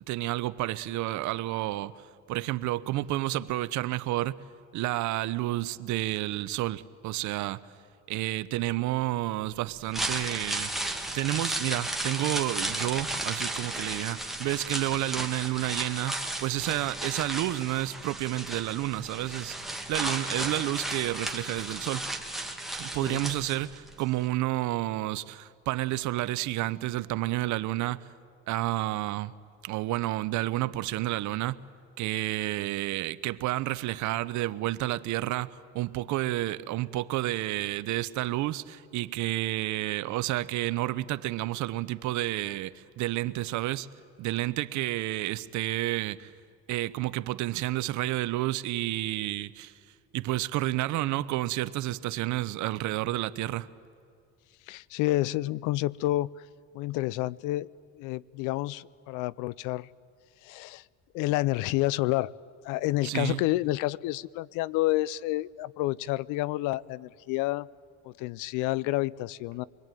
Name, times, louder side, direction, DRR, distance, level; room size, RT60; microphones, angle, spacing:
voice 1, 0.1-1.9 2.3-4.4 4.7-7.6 8.1-10.7 11.1-19.6 19.9-22.0 22.8-28.1 28.5-29.3 29.6-31.6 32.0-43.9 44.2-46.3 46.7-49.7 50.1-53.7 63.0-63.4, right 16 dB, 70° right, 0.9 m, -30 dB
sound 1, 9.7-23.9 24.2-24.3, right 2 dB, ahead, 2.3 m, -34 dB
voice 2, 54.7-56.3 56.7-59.9 60.4-60.8 61.1-62.3 62.6-67.7 68.1-69.6, left 17 dB, 80° left, 0.6 m, -29 dB
25.0 x 21.5 x 9.1 m
cardioid pair, 110°, 31 cm